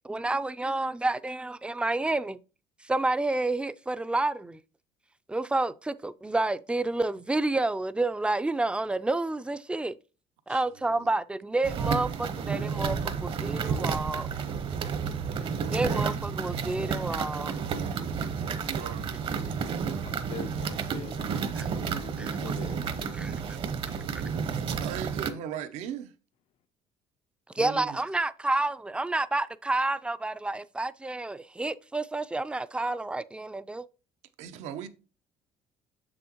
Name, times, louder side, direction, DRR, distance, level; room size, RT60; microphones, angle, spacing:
voice 1, 0.1-2.4 2.8-4.6 5.3-9.9 10.5-14.3 15.7-17.5 21.6-22.4 23.1-23.6 27.5-33.9, right 2 dB, 10° right, 0.3 m, -29 dB
sound 1, 11.6-25.3, right 6 dB, 50° right, 0.9 m, -31 dB
voice 2, 15.0-15.5 18.5-19.1 24.8-26.1 27.6-28.0 34.4-34.9, right 9 dB, 80° right, 0.7 m, -38 dB
voice 3, 20.0-23.2, left 8 dB, 60° left, 0.5 m, -44 dB
6.9 x 6.2 x 2.9 m
cardioid pair, 105°, 11 cm